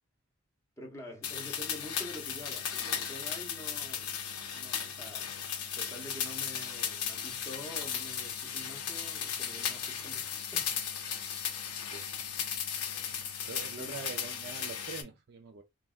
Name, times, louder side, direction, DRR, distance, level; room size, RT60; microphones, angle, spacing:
voice 1, 0.8-5.3 5.8-10.8 13.8-13.9, equal, 15° left, 0.6 m, -47 dB
sound 1, 1.2-15.0, left 8 dB, 85° left, 0.6 m, -36 dB
voice 2, 13.5-15.6, right 4 dB, 45° right, 0.4 m, -44 dB
3.3 x 2.1 x 2.4 m
head